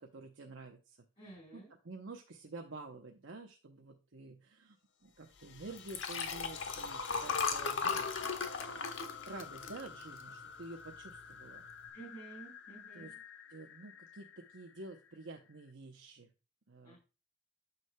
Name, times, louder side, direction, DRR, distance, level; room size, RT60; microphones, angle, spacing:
voice 1, 0.0-1.0 1.5-4.8 5.0-8.1 8.4-8.9 9.3-11.7 12.9-13.1 13.5-16.3 16.7-17.0, right 3 dB, 70° right, 2 dB, 0.8 m, -49 dB
voice 2, 1.2-1.7 11.9-13.2 16.8-17.0, right 3 dB, 30° left, -5 dB, 4.8 m, -52 dB
sound 1, 5.1-15.7, left 6 dB, 60° left, 0.7 m, -50 dB
Liquid, 5.8-10.4 10.9-11.2 11.4-11.5, left 5 dB, 85° left, 1.1 m, -36 dB
9.3 x 7.1 x 2.2 m, 0.31 s
head